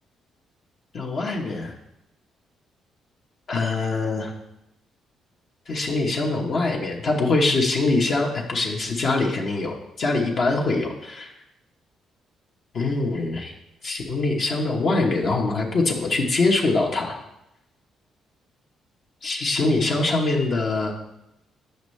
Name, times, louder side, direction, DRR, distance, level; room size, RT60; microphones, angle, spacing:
voice 1, 0.9-1.7 3.5-4.3 5.7-11.3 12.7-13.5 13.8-17.1 19.2-20.9, left 3 dB, 55° left, -1 dB, 1.0 m, -23 dB
7.9 x 5.4 x 3.2 m, 0.88 s
cardioid pair, 90°, 0 cm